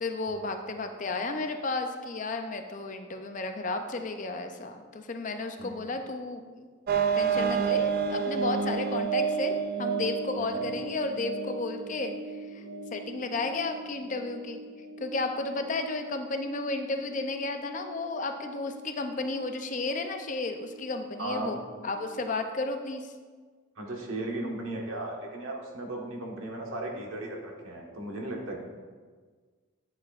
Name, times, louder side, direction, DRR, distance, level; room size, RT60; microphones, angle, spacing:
voice 1, 0.0-6.7 7.2-12.6 12.9-14.6 15.0-23.1, left 3 dB, 35° left, 6 dB, 0.5 m, -33 dB
sound 1, 6.9-22.3, right 5 dB, 45° right, 0.4 m, -33 dB
voice 2, 21.2-21.5 23.8-28.6, right 2 dB, 75° right, 0 dB, 1.4 m, -36 dB
10.0 x 7.5 x 2.5 m, 1.5 s
head